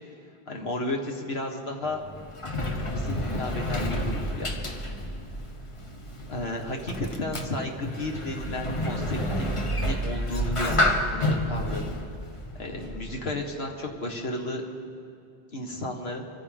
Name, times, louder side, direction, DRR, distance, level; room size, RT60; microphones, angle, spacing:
voice 1, 0.5-2.0 2.9-4.5 6.3-12.0 12.6-14.6 15.5-16.3, left 1 dB, 70° left, 1 dB, 2.0 m, -33 dB
Sliding door, 1.9-13.3, left 1 dB, 30° left, 1.1 m, -30 dB
25.5 x 15.0 x 3.7 m, 2.5 s
omnidirectional pair, 1.1 m